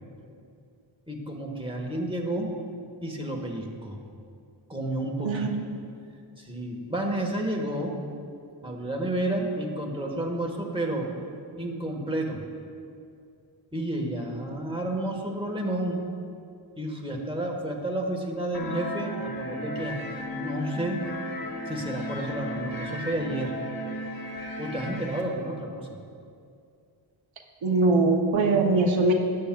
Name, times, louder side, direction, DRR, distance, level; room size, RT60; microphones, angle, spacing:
voice 1, 1.1-2.5 3.0-4.0 4.7-5.5 6.4-8.0 8.6-11.1 11.6-12.4 13.7-16.0 16.8-20.0 20.4-21.1 21.7-23.5 24.6-25.9, right 1 dB, 10° right, 0 dB, 1.3 m, -31 dB
voice 2, 5.2-5.7 27.6-29.1, right 3 dB, 80° right, 2 dB, 0.8 m, -22 dB
sound 1, 18.5-25.2, equal, 50° left, 1.0 m, -35 dB
13.5 x 8.8 x 2.3 m, 2.4 s
cardioid pair, 55°, 46 cm